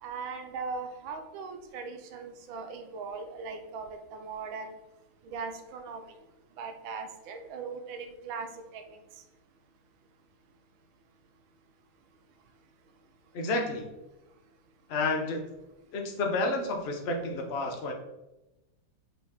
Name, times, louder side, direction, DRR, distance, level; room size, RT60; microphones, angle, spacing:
voice 1, 0.0-4.7 5.2-6.0 6.6-9.0, right 4 dB, 80° right, 6 dB, 1.4 m, -39 dB
voice 2, 13.3-13.9 14.9-15.4 15.9-17.9, left 2 dB, 50° left, 2 dB, 0.8 m, -30 dB
5.9 x 5.5 x 3.0 m, 0.98 s
omnidirectional pair, 2.2 m